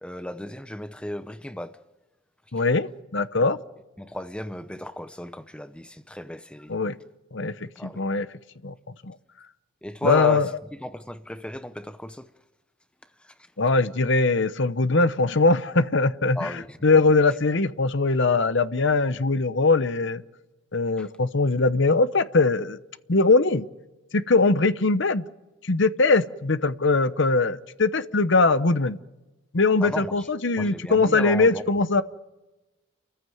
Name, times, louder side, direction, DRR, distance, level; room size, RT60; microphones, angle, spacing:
voice 1, 0.0-1.8 2.6-2.7 4.0-6.8 7.8-8.1 9.8-12.3 13.2-13.4 16.3-17.0 21.0-21.1 29.8-30.3 30.6-31.6, left 1 dB, 5° left, 0.7 m, -35 dB
voice 2, 2.5-3.6 6.7-6.9 7.3-7.5 8.0-8.3 8.6-8.7 9.0-9.1 10.0-10.5 13.6-16.5 16.8-20.2 20.7-22.8 23.1-23.7 24.1-25.2 25.6-29.0 29.5-32.0, left 3 dB, 55° left, 0.9 m, -21 dB
29.5 x 15.0 x 9.3 m
head